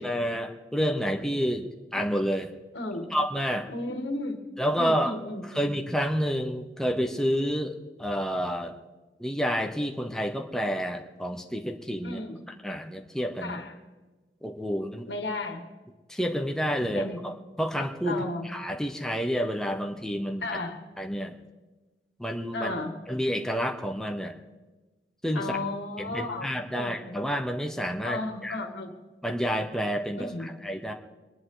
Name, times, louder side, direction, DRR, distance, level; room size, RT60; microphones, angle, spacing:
voice 1, 0.0-1.6 1.9-2.5 3.1-3.7 4.6-5.1 5.5-8.7 9.2-12.2 12.6-13.6 14.4-15.1 16.1-20.4 21.0-21.4 22.2-22.7 23.1-24.3 25.2-25.4 26.1-28.6 29.2-30.3 30.6-30.9, equal, 5° left, 3 dB, 0.9 m, -29 dB
voice 2, 2.7-3.2 3.7-4.5 4.7-5.7 12.0-12.4 13.4-13.7 15.1-15.6 16.9-17.3 18.0-18.5 20.4-20.9 22.5-23.0 25.3-26.5 26.7-27.2 28.0-29.0 30.1-30.5, left 2 dB, 80° left, 5 dB, 1.8 m, -34 dB
24.0 x 10.5 x 3.9 m, 1.2 s
head